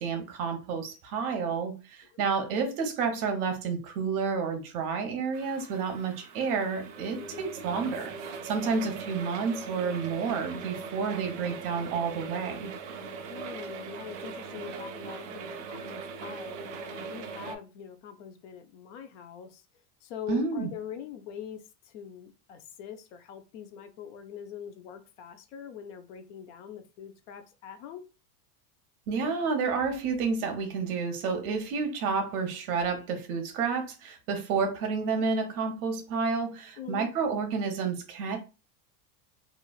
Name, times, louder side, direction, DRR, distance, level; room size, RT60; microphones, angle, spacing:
voice 1, 0.0-12.7 20.3-20.7 29.1-38.4, right 5 dB, 65° right, 0.9 m, -30 dB
sound 1, 5.3-17.6, right 4 dB, 50° right, 0.5 m, -40 dB
voice 2, 7.2-7.5 13.2-19.6 20.0-28.0 36.8-37.1, left 9 dB, 50° left, 0.5 m, -43 dB
3.1 x 2.4 x 2.3 m
supercardioid pair, 165°, 47 cm